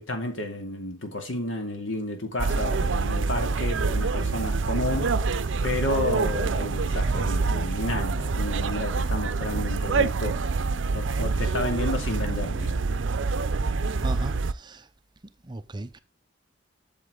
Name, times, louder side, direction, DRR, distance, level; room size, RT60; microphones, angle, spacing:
voice 1, 0.0-5.4 5.6-10.4 10.9-13.0, left 1 dB, 85° left, 2.4 m, -31 dB
sound 1, 2.4-14.5, right 4 dB, 75° right, 0.6 m, -26 dB
voice 2, 14.0-14.8 15.4-16.0, right 2 dB, 25° right, 0.6 m, -37 dB
8.2 x 7.1 x 3.8 m
head